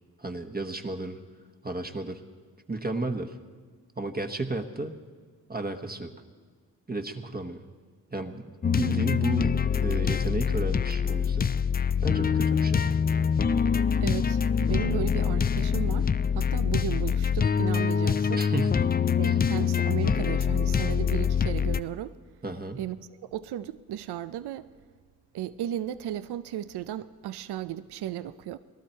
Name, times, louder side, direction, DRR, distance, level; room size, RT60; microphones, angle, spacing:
voice 1, 0.2-1.2 1.6-2.2 2.7-3.3 4.0-4.9 5.5-6.1 6.9-7.6 8.1-11.5 12.0-12.9 18.3-18.9 19.2-19.4 22.4-22.8, right 2 dB, 25° right, 1.1 m, -33 dB
sound 1, 8.6-21.8, left 7 dB, 25° left, 0.4 m, -25 dB
voice 2, 14.0-18.4 19.2-22.2 22.7-24.7 25.3-28.6, right 11 dB, 80° right, 0.5 m, -35 dB
18.5 x 12.0 x 4.4 m
cardioid pair, 50°, 39 cm